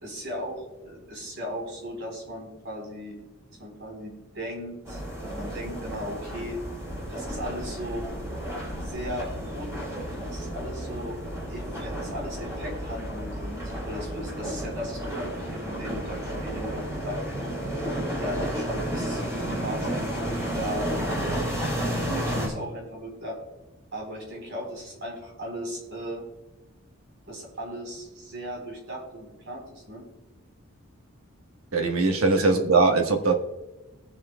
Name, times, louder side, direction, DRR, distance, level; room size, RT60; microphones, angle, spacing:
voice 1, 0.0-3.2 3.5-5.0 5.3-6.6 7.1-8.0 8.8-11.2 11.5-17.5 18.2-21.5 21.8-23.4 23.9-26.2 27.3-30.0, equal, 55° right, -1 dB, 4.0 m, -37 dB
sound 1, 4.8-22.5, equal, 15° right, 3.9 m, -32 dB
voice 2, 31.7-33.3, right 3 dB, 85° right, 3 dB, 1.4 m, -21 dB
20.0 x 7.2 x 2.3 m, 1.0 s
head